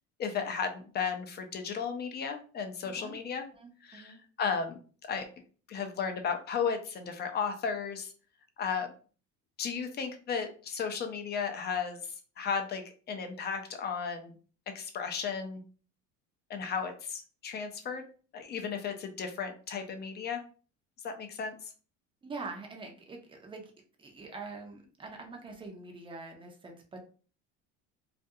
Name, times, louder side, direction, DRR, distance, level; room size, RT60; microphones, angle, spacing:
voice 1, 0.2-3.4 3.8-5.2 5.7-8.1 8.6-8.9 9.6-12.0 12.4-14.3 14.7-15.6 16.5-18.0 18.3-20.4 21.0-21.5, left 6 dB, 30° left, 6 dB, 0.5 m, -34 dB
voice 2, 2.8-3.2 3.5-4.2 22.2-23.7 24.0-27.0, right 3 dB, 15° right, 2 dB, 0.5 m, -44 dB
2.4 x 2.2 x 2.6 m, 0.39 s
cardioid pair, 120°, 33 cm